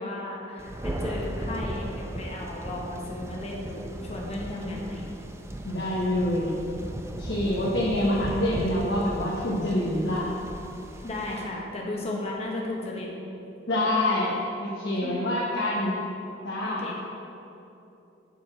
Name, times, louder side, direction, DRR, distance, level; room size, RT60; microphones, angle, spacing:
voice 1, 0.0-5.0 11.0-13.1 15.0-15.2 16.6-17.0, left 2 dB, 35° left, -2 dB, 0.9 m, -34 dB
Thunder, 0.6-11.4, right 1 dB, 15° right, 0.4 m, -36 dB
voice 2, 5.6-6.5 7.2-10.3 13.7-14.3 14.6-15.9 16.4-17.0, left 1 dB, 85° left, -5 dB, 0.9 m, -26 dB
7.1 x 4.7 x 4.7 m, 2.9 s
head